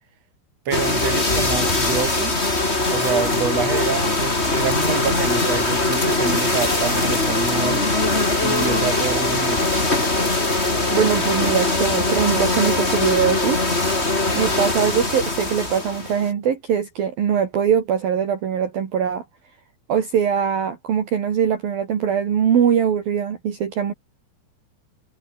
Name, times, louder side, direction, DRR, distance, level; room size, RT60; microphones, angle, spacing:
sound 1, 0.7-16.3, left 2 dB, 15° left, 3.6 m, -21 dB
voice 1, 0.7-2.4 2.9-7.8 8.4-9.6, right 7 dB, 35° right, 4.5 m, -27 dB
voice 2, 10.9-13.6 14.4-19.2 19.9-23.9, right 8 dB, 55° right, 4.1 m, -21 dB
omnidirectional pair, 5.3 m